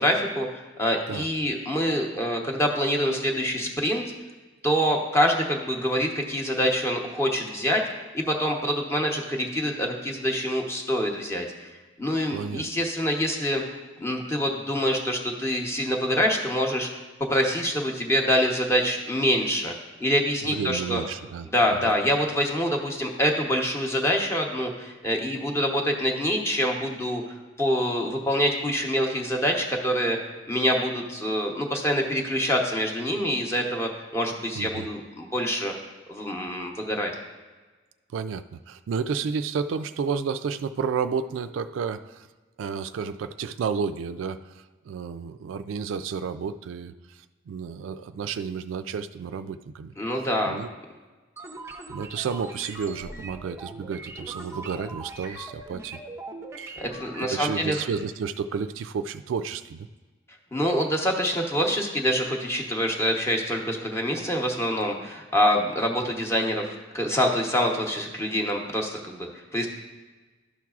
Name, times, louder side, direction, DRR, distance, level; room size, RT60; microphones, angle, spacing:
voice 1, 0.0-4.1 4.6-7.8 8.1-11.5 12.0-13.6 14.0-16.9 17.2-19.7 20.0-21.0 21.4-27.2 27.6-30.2 30.5-35.7 36.1-37.1 50.0-50.6 56.8-57.9 60.5-66.7 66.9-69.7, equal, 15° left, 1 dB, 0.8 m, -25 dB
voice 2, 12.3-12.6 20.4-21.5 34.6-34.9 38.1-42.3 42.6-49.9 50.5-50.7 51.9-56.0 56.6-56.8 57.3-59.9, right 6 dB, 75° right, 9 dB, 0.3 m, -31 dB
sound 1, 51.4-57.3, right 2 dB, 15° right, 0.5 m, -41 dB
12.0 x 5.9 x 2.4 m, 1.3 s
head